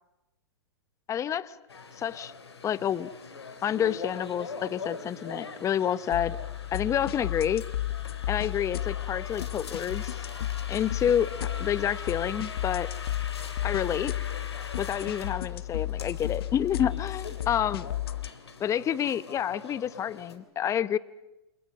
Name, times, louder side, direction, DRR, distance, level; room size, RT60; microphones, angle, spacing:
voice 1, 1.1-1.6 2.0-2.3 2.6-3.1 3.6-6.4 6.7-7.6 8.3-10.1 10.7-12.9 13.6-14.1 14.8-17.9 18.6-21.0, left 9 dB, 25° left, 17 dB, 0.9 m, -29 dB
sound 1, 1.7-20.4, left 5 dB, 90° left, 3.5 m, -42 dB
sound 2, 6.1-18.3, left 13 dB, 70° left, 1.1 m, -33 dB
28.5 x 28.0 x 6.8 m, 0.98 s
hypercardioid pair, 115°, 13 cm